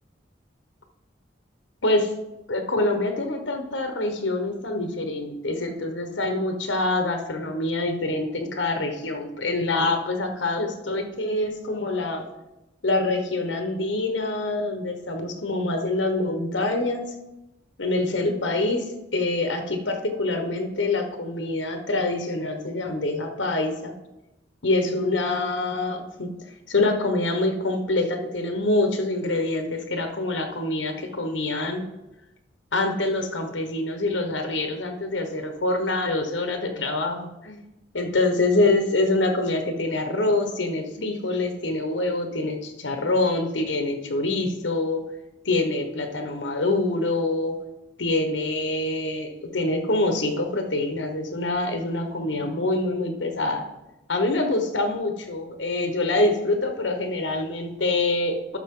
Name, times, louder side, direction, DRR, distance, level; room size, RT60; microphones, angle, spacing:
voice 1, 1.8-2.1 2.5-12.3 12.8-17.0 17.8-23.9 24.6-26.3 26.7-31.8 32.7-37.6 37.9-45.1 45.4-47.6 48.0-53.6 54.1-58.6, left 2 dB, 85° left, 5 dB, 1.2 m, -25 dB
12.5 x 6.3 x 3.8 m, 0.95 s
head